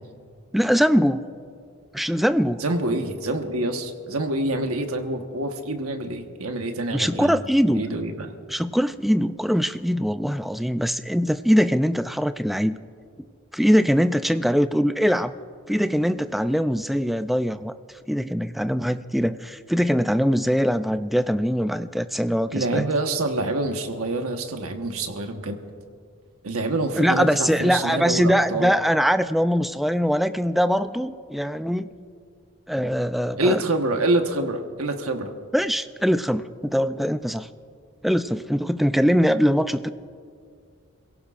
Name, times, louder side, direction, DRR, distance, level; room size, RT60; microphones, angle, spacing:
voice 1, 0.5-1.3 1.9-2.6 6.9-7.8 8.5-12.8 13.5-15.3 15.7-17.7 18.1-22.9 27.0-31.9 32.7-33.6 35.5-37.5 38.0-39.9, equal, ahead, 11 dB, 0.3 m, -22 dB
voice 2, 2.6-7.4 7.7-8.3 22.5-25.6 26.4-28.8 33.4-35.3, right 2 dB, 85° right, 4 dB, 1.3 m, -26 dB
29.0 x 17.0 x 2.5 m, 2.2 s
head